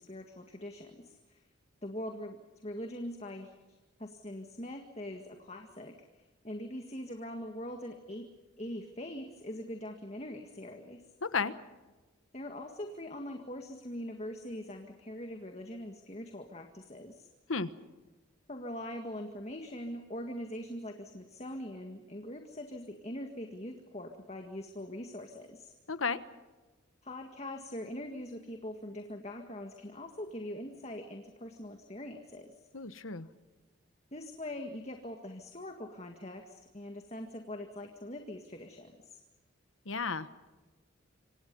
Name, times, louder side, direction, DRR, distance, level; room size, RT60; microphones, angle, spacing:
voice 1, 0.0-1.4 1.8-3.5 4.0-8.3 8.6-11.0 12.3-17.3 18.5-25.7 27.0-32.5 34.1-39.2, left 1 dB, 30° left, 4 dB, 1.9 m, -42 dB
voice 2, 11.2-11.5 17.5-17.7 25.9-26.2 32.7-33.3 39.9-40.5, left 4 dB, 80° left, 12 dB, 1.3 m, -33 dB
27.5 x 25.0 x 5.5 m, 1.2 s
head